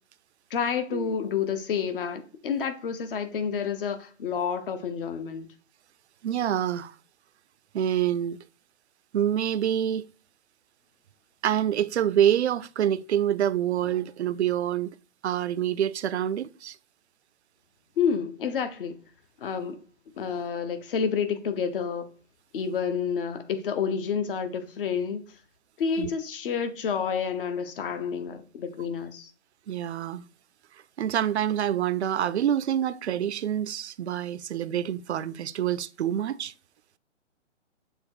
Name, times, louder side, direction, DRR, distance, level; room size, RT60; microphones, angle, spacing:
voice 1, 0.5-5.5 18.0-19.0 19.4-19.8 20.2-22.1 22.5-25.2 25.8-29.3, left 6 dB, 50° left, 1.1 m, -29 dB
voice 2, 6.2-6.9 7.7-8.4 9.1-10.0 11.4-15.0 15.2-16.8 26.0-26.1 29.7-30.3 31.0-36.5, right 10 dB, 65° right, 0.5 m, -26 dB
7.1 x 3.0 x 4.8 m
figure-of-eight pair, 130°, 36 cm